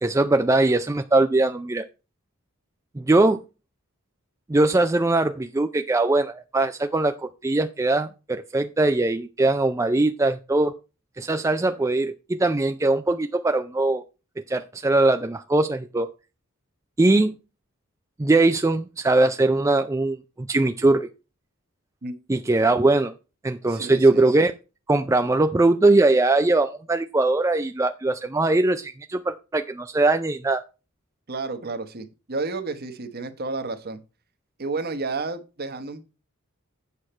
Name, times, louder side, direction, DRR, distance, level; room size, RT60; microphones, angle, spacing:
voice 1, 0.0-1.8 3.0-3.4 4.5-10.7 11.2-14.0 14.5-16.1 17.0-17.4 18.2-21.1 22.3-23.1 23.4-24.5 24.9-30.6, right 2 dB, 15° right, 0.4 m, -21 dB
voice 2, 23.7-24.2 31.3-34.0 34.6-36.0, right 3 dB, 45° right, 1.1 m, -31 dB
8.4 x 6.4 x 4.3 m
head